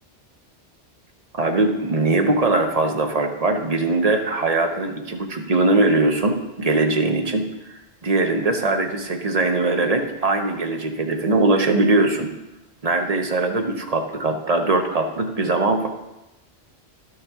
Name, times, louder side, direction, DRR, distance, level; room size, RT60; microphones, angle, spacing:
voice 1, 1.3-12.3 12.8-15.9, right 2 dB, 40° right, 4 dB, 0.8 m, -21 dB
11.0 x 6.5 x 3.6 m, 0.95 s
omnidirectional pair, 1.1 m